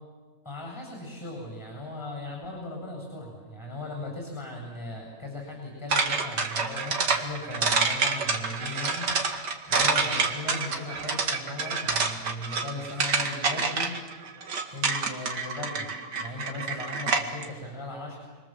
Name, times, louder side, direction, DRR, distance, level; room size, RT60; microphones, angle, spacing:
voice 1, 0.4-9.1 9.7-14.0 14.7-18.2, left 2 dB, 15° left, 0 dB, 7.9 m, -37 dB
sound 1, 5.9-17.5, right 4 dB, 75° right, 2.6 m, -27 dB
29.0 x 23.0 x 7.8 m, 1.5 s
omnidirectional pair, 1.8 m